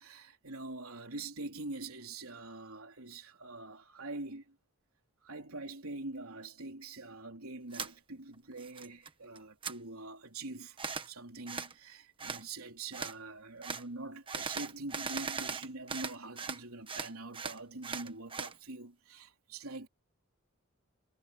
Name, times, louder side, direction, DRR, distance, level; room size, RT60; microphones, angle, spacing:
voice 1, 0.0-4.6 5.2-10.8 11.1-19.9, right 2 dB, 85° right, 3.5 m, -44 dB
sound 1, 7.7-7.9 8.3-9.1 9.4-9.8 10.8-11.1 11.5-11.7 12.2-12.4 12.9-13.2 13.6-13.8 14.3-16.6 16.9-18.5, right 5 dB, 25° right, 1.3 m, -39 dB
head